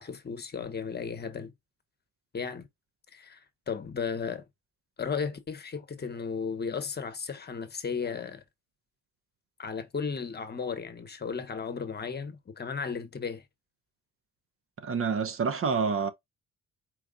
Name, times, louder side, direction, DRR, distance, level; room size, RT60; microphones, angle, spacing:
voice 1, 0.0-1.5 2.3-2.7 3.1-3.4 3.7-4.4 5.0-8.4 9.6-13.4, left 5 dB, 35° left, 1.0 m, -35 dB
voice 2, 14.8-16.1, right 5 dB, 45° right, 0.8 m, -27 dB
4.7 x 2.3 x 3.7 m
cardioid pair, 90°, 30 cm